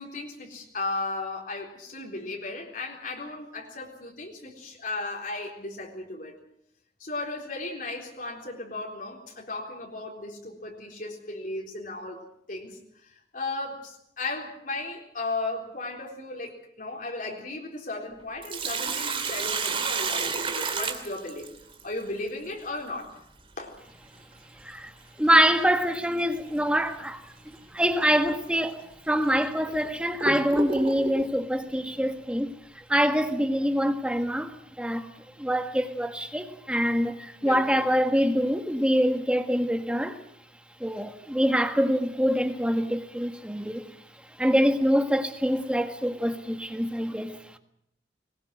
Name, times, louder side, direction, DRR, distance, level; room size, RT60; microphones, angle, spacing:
voice 1, 0.0-6.4 7.0-21.5 21.8-23.2 23.6-23.7 37.4-37.9, left 2 dB, 50° left, 3.9 m, -35 dB
Sink (filling or washing), 18.2-21.8 24.2-24.3 26.2-26.4 26.9-27.0 27.8-27.9 28.6-28.7 29.4-31.3, right 4 dB, 30° right, 2.4 m, -30 dB
voice 2, 25.2-35.1 35.4-40.2 40.8-43.8 44.4-47.6, equal, 5° right, 1.6 m, -25 dB
21.0 x 20.0 x 7.9 m
head